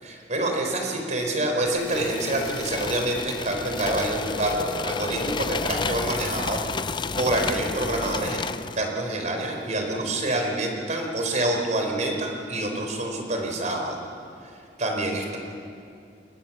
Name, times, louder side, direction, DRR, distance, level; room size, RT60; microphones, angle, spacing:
voice 1, 0.0-14.0 14.8-15.4, right 1 dB, 40° right, 2 dB, 4.4 m, -27 dB
sound 1, 1.8-8.9, left 4 dB, 25° left, 0.5 m, -31 dB
28.5 x 21.5 x 7.4 m, 2.5 s
head